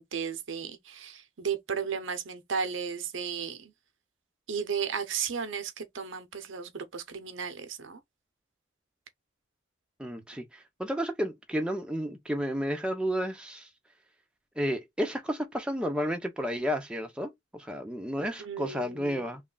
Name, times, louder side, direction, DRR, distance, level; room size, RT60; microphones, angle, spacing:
voice 1, 0.0-3.7 4.5-8.0 18.4-19.3, right 6 dB, 70° right, 0.7 m, -34 dB
voice 2, 10.0-13.7 14.6-19.4, equal, 5° right, 0.6 m, -32 dB
3.2 x 2.3 x 3.8 m
head